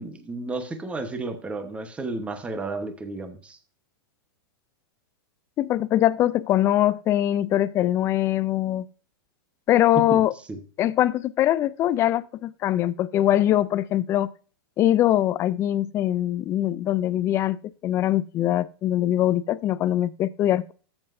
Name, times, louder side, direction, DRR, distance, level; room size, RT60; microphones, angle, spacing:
voice 1, 0.0-3.6 9.9-10.2 10.5-10.6, right 3 dB, 10° right, 1.0 m, -32 dB
voice 2, 5.6-8.9 9.7-10.3 10.8-14.3 14.8-17.6 17.8-20.7, left 13 dB, 20° left, 0.3 m, -22 dB
12.5 x 7.9 x 2.6 m
supercardioid pair, 150°, 13 cm